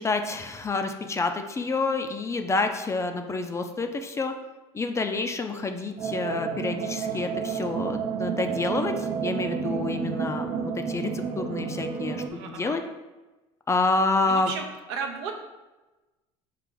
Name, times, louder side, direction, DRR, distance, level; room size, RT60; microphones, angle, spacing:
voice 1, 0.0-4.3 4.7-12.8 13.7-14.5, left 3 dB, 20° left, 6 dB, 0.4 m, -28 dB
sound 1, 6.0-12.3, right 6 dB, 40° right, 0.4 m, -30 dB
voice 2, 12.3-12.8 14.3-15.3, right 6 dB, 80° right, 3 dB, 0.6 m, -34 dB
4.8 x 2.4 x 3.7 m, 1.1 s
hypercardioid pair, 80°, 14 cm